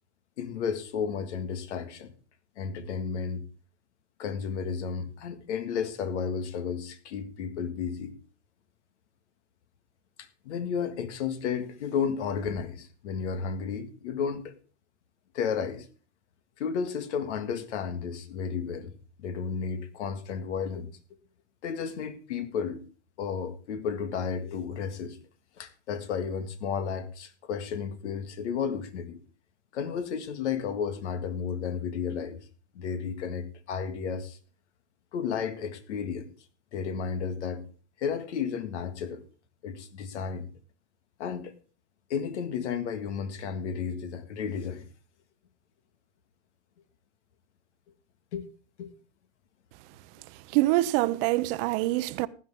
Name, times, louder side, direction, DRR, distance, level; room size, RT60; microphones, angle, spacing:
voice 1, 0.4-2.1 2.6-3.5 4.2-8.2 10.2-14.5 15.3-15.9 16.6-18.9 19.2-21.0 21.6-22.9 23.2-25.2 25.6-29.2 29.7-32.5 32.7-34.4 35.1-36.3 36.7-37.7 38.0-39.2 39.6-40.5 41.2-41.5 42.1-44.9 48.3-48.5 48.8-48.9, left 6 dB, 80° left, 1.9 m, -32 dB
voice 2, 50.5-52.3, right 18 dB, 55° right, 0.8 m, -25 dB
15.5 x 10.5 x 3.6 m
supercardioid pair, 125°, 35 cm